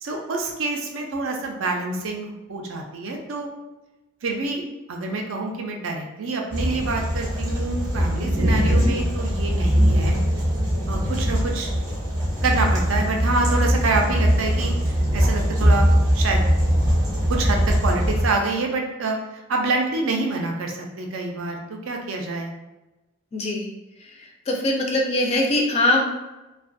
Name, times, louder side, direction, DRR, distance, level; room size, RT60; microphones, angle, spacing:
voice 1, 0.0-3.5 4.2-10.2 10.9-11.7 12.4-16.5 17.3-22.5, right 3 dB, 65° right, 2 dB, 0.4 m, -27 dB
sound 1, 6.5-18.3, equal, 15° right, 0.6 m, -21 dB
voice 2, 8.6-8.9 23.3-23.7 24.5-26.1, left 1 dB, 30° left, 1 dB, 0.3 m, -22 dB
2.4 x 2.2 x 2.5 m, 1.1 s
head